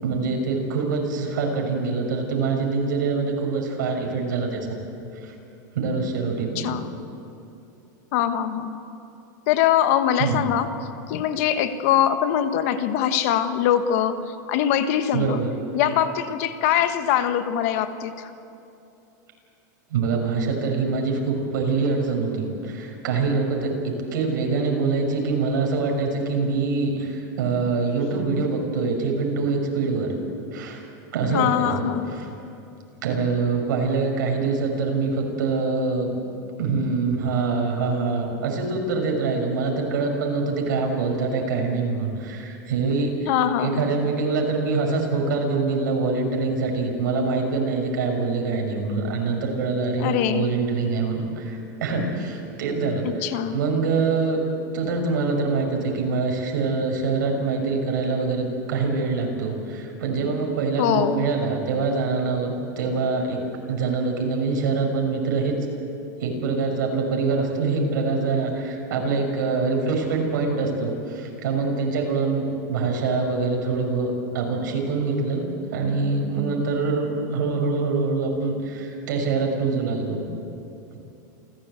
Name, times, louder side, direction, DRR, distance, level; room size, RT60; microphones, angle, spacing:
voice 1, 0.0-4.6 5.2-5.3 5.7-6.7 10.2-10.4 15.1-15.5 19.9-30.1 30.5-30.9 31.1-31.9 32.1-32.3 33.0-36.1 36.6-43.3 43.6-54.4 54.7-63.4 63.7-65.6 66.2-75.4 75.7-80.3, right 4 dB, 80° right, 2 dB, 5.9 m, -24 dB
voice 2, 6.5-7.0 8.1-8.8 9.5-10.7 11.1-15.4 15.7-18.3 31.3-32.1 43.3-44.0 50.0-50.5 53.2-53.6 60.8-61.3, left 10 dB, 50° left, 10 dB, 1.4 m, -23 dB
28.5 x 16.0 x 8.2 m, 2.7 s
supercardioid pair, 165°, 10 cm